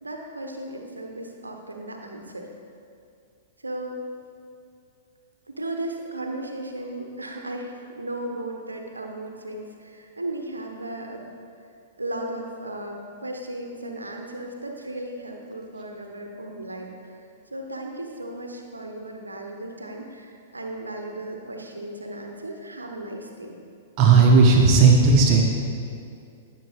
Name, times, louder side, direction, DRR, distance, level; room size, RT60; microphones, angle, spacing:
voice 1, 0.0-2.5 3.6-4.0 5.5-11.3 12.0-17.2 17.5-23.6, right 1 dB, 90° right, 3 dB, 1.0 m, -35 dB
voice 2, 24.0-25.4, right 4 dB, 40° right, 0 dB, 1.4 m, -15 dB
15.0 x 7.3 x 3.6 m, 2.5 s
figure-of-eight pair, 110°, 0 cm